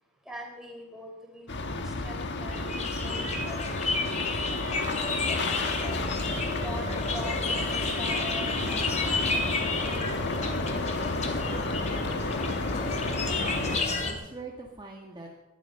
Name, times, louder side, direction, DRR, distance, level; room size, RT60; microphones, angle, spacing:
voice 1, 0.3-6.0 6.6-10.1, equal, ahead, 0 dB, 4.2 m, -43 dB
sound 1, 1.5-13.8, left 2 dB, 55° left, 1.5 m, -32 dB
sound 2, 2.5-14.1, left 3 dB, 30° left, 2.3 m, -31 dB
voice 2, 13.2-15.4, right 2 dB, 20° right, -1 dB, 1.7 m, -42 dB
19.5 x 12.5 x 5.7 m, 1.1 s
head